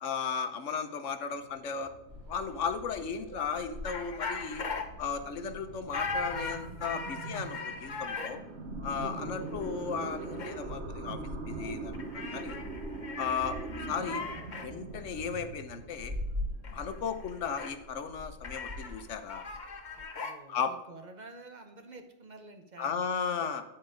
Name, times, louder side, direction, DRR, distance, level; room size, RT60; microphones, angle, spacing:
voice 1, 0.0-1.9 2.3-4.6 5.0-8.4 8.8-11.2 11.5-12.6 13.2-14.2 14.6-16.1 16.7-19.5 20.5-20.7 22.8-23.6, left 6 dB, 70° left, 9 dB, 1.1 m, -35 dB
sound 1, 1.3-19.1, right 3 dB, 60° right, 1.4 m, -43 dB
sound 2, 2.1-20.0, left 1 dB, 20° right, 2.9 m, -45 dB
sound 3, 3.8-4.8 5.9-8.3 9.6-9.7 10.0-10.5 11.9-14.7 16.6-16.8 17.1-17.7 18.4-20.4, left 4 dB, 40° left, 1.0 m, -38 dB
voice 2, 19.9-23.0, right 2 dB, 40° right, 6 dB, 1.0 m, -50 dB
10.0 x 4.4 x 5.0 m, 0.98 s
omnidirectional pair, 1.3 m